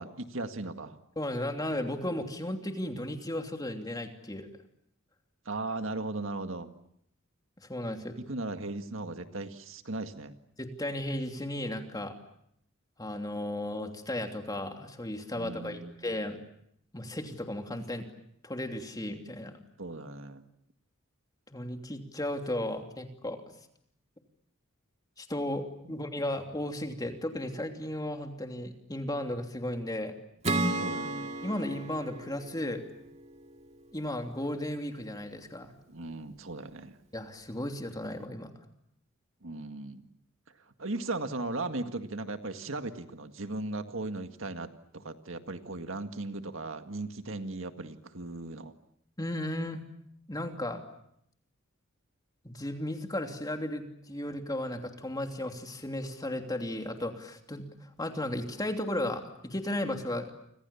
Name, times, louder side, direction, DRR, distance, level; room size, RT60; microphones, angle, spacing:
voice 1, 0.0-1.0 5.5-6.7 8.3-10.4 15.3-16.1 19.8-20.4 25.9-26.1 30.8-31.3 35.9-37.0 39.4-40.1 40.8-44.7 44.9-48.8, right 2 dB, 70° right, 7 dB, 1.9 m, -37 dB
voice 2, 1.2-4.5 7.7-8.2 10.6-12.1 13.0-16.4 16.9-18.1 18.4-19.5 21.5-23.4 25.2-30.1 31.4-32.8 33.9-35.7 37.1-38.5 49.2-49.8 50.3-50.8 52.4-60.3, left 1 dB, 20° left, 4 dB, 3.0 m, -35 dB
Acoustic guitar / Strum, 30.4-33.9, right 2 dB, 30° right, 2.3 m, -34 dB
30.0 x 26.5 x 7.1 m, 0.73 s
head